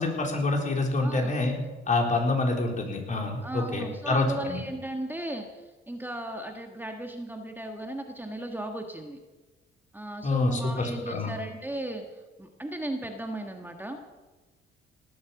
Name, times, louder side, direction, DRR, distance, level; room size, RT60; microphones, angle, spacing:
voice 1, 0.0-1.5 1.9-4.6 10.2-11.3, left 2 dB, 40° left, 1 dB, 3.8 m, -27 dB
voice 2, 1.0-1.3 3.4-9.2 9.9-14.2, right 1 dB, 10° right, 3 dB, 1.5 m, -36 dB
18.5 x 8.7 x 7.0 m, 1.2 s
cardioid pair, 90°, 20 cm